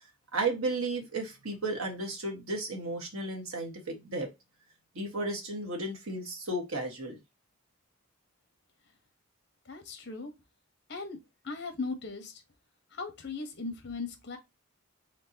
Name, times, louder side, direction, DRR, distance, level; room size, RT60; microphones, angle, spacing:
voice 1, 0.3-4.3 4.9-7.2, right 2 dB, 80° right, 1.6 m, -34 dB
voice 2, 9.7-10.3 10.9-11.2 11.4-12.4 12.9-14.4, left 4 dB, 50° left, 1.2 m, -38 dB
4.4 x 3.9 x 2.8 m
head